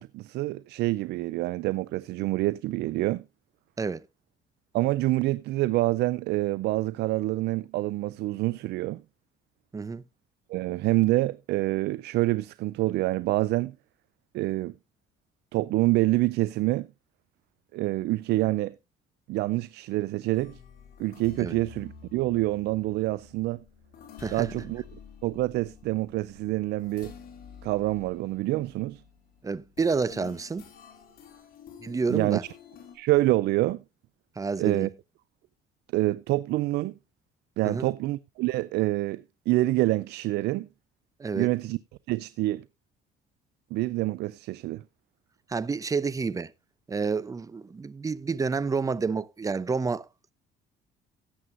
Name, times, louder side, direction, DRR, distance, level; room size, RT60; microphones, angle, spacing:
voice 1, 0.0-3.2 4.7-9.0 10.5-13.7 14.3-14.7 15.5-16.9 17.7-18.7 19.3-20.6 21.0-23.6 24.3-24.8 25.2-27.1 27.6-29.0 32.1-32.4 32.9-33.8 34.6-34.9 35.9-36.9 37.6-40.7 41.3-41.8 42.1-42.6 43.7-44.8, right 18 dB, 80° right, 0.5 m, -26 dB
voice 2, 9.7-10.0 21.4-21.6 24.2-24.5 29.4-30.7 31.8-32.4 34.4-34.9 37.6-37.9 41.2-41.5 45.5-46.5 46.9-50.1, right 4 dB, 20° right, 0.6 m, -29 dB
sound 1, 20.3-33.0, left 7 dB, 60° left, 4.1 m, -49 dB
17.5 x 7.7 x 2.6 m
cardioid pair, 110°, 17 cm